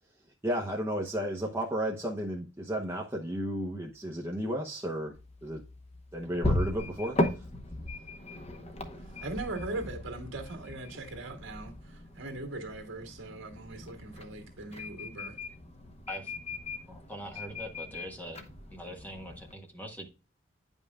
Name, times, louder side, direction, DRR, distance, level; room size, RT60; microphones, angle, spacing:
voice 1, 0.4-5.1 5.4-5.6 6.1-7.5, equal, 15° right, 0.8 m, -33 dB
sound 1, 5.1-19.5, left 1 dB, 30° left, 1.0 m, -37 dB
voice 2, 9.0-15.4, right 2 dB, 70° right, 1.8 m, -40 dB
voice 3, 16.9-18.4 18.7-20.1, equal, 10° left, 1.4 m, -42 dB
9.7 x 5.3 x 2.3 m
head